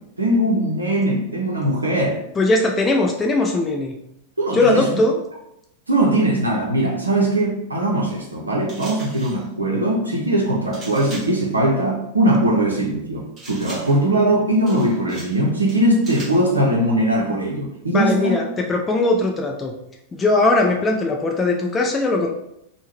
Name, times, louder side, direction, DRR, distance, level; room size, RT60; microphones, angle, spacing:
voice 1, 0.2-2.2 4.4-5.0 5.9-18.4, right 1 dB, 80° right, -2 dB, 0.5 m, -20 dB
voice 2, 2.4-3.9 4.5-5.2 17.9-19.7 20.1-22.3, left 2 dB, 20° left, 1 dB, 0.3 m, -19 dB
sound 1, 8.7-9.5 10.7-11.4 13.4-14.1 14.7-15.4 15.7-16.5, right 2 dB, 25° right, 1.2 m, -39 dB
3.5 x 2.0 x 3.0 m, 0.80 s
figure-of-eight pair, 90°, 0 cm